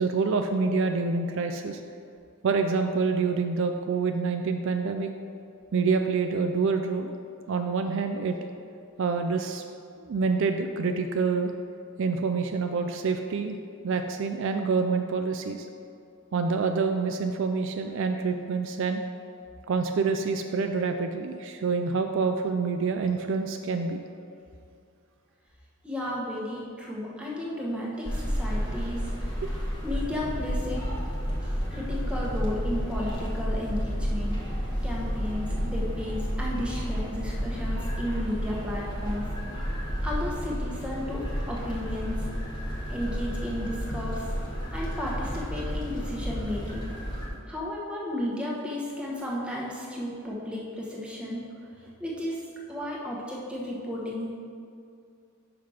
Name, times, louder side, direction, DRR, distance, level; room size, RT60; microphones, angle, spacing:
voice 1, 0.0-1.8 2.4-5.1 5.7-7.1 7.5-8.4 9.0-9.6 10.0-11.5 12.0-13.6 13.8-15.7 16.3-19.0 19.7-24.0 29.4-29.5, right 4 dB, 60° right, 6 dB, 0.4 m, -27 dB
voice 2, 25.8-30.8 31.4-34.4 34.8-39.3 40.0-42.2 42.7-44.3 44.7-46.9 47.5-51.4 52.0-54.3, left 1 dB, 5° right, -5 dB, 1.1 m, -34 dB
sound 1, 28.0-47.3, equal, 20° left, 1.0 m, -31 dB
5.8 x 5.7 x 4.9 m, 2.4 s
head